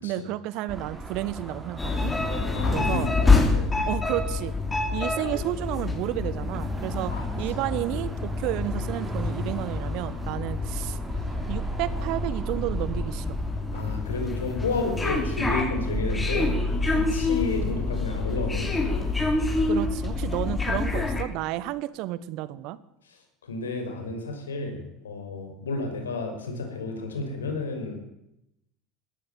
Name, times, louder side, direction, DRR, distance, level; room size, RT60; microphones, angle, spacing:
voice 1, 0.0-2.1 2.7-3.1 3.9-4.6 4.9-11.0 11.5-13.4 19.7-22.8, right 15 dB, 55° right, 17 dB, 1.2 m, -31 dB
Car passing by / Traffic noise roadway noise / Engine, 0.7-19.4, right 1 dB, 15° right, 6.3 m, -42 dB
sound 1, 1.8-21.2, left 3 dB, 15° left, 5.1 m, -27 dB
voice 2, 2.5-3.7 7.1-7.3 13.7-16.5 16.9-19.1 23.1-27.9, left 3 dB, 80° left, 5 dB, 5.8 m, -32 dB
20.0 x 16.0 x 9.2 m, 0.84 s
figure-of-eight pair, 70°, 0 cm